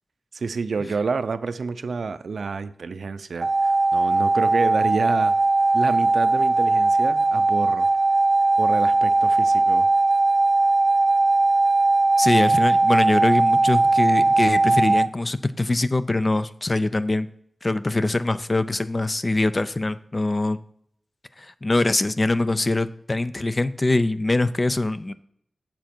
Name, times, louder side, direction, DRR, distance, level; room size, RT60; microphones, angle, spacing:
voice 1, 0.3-5.3 5.7-7.9 8.6-9.9, right 4 dB, 90° right, 13 dB, 0.4 m, -29 dB
sound 1, 3.4-15.1, right 2 dB, 45° right, 0.6 m, -19 dB
voice 2, 12.2-17.3 17.6-20.6 21.4-25.1, left 2 dB, 35° left, 13 dB, 0.4 m, -23 dB
7.6 x 7.2 x 4.4 m, 0.70 s
wide cardioid pair, 105°, 0 cm